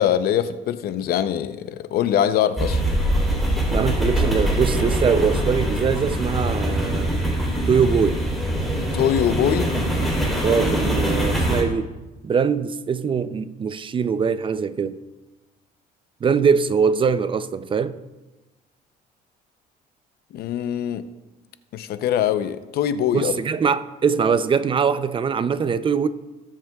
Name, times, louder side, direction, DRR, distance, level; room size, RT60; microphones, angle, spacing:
voice 1, 0.0-2.8 8.9-9.7 20.3-21.0 21.7-23.3, left 10 dB, 65° left, 0.6 m, -22 dB
sound 1, 2.6-11.6, right 1 dB, ahead, 3.3 m, -23 dB
voice 2, 3.7-7.2 7.7-8.2 10.4-11.9 12.2-15.0 16.2-18.0 23.1-26.1, right 6 dB, 30° right, 0.5 m, -22 dB
19.5 x 7.5 x 2.3 m
cardioid pair, 110°, 17 cm